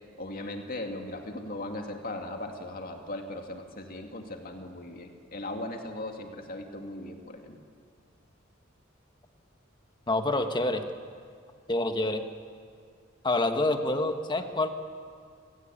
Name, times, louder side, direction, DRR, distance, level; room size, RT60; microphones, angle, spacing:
voice 1, 0.2-7.6, left 1 dB, 45° left, 3 dB, 2.5 m, -38 dB
voice 2, 10.1-10.9 11.7-12.2 13.2-14.7, left 2 dB, 20° left, 6 dB, 1.5 m, -27 dB
27.5 x 17.5 x 9.0 m, 2.2 s
head